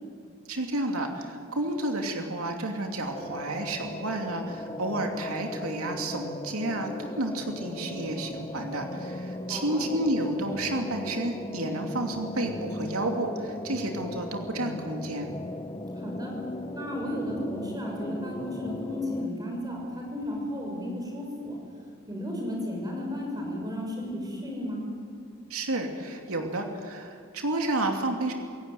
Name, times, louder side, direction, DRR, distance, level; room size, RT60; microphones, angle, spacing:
voice 1, 0.5-15.3 25.5-28.3, right 1 dB, 85° right, 3 dB, 2.8 m, -31 dB
sound 1, 3.1-19.3, left 1 dB, 20° left, 0.8 m, -37 dB
voice 2, 9.5-9.9 16.0-16.3 16.7-21.6 22.1-24.8, left 1 dB, 20° right, 0 dB, 6.3 m, -34 dB
27.5 x 17.0 x 9.4 m, 2.3 s
head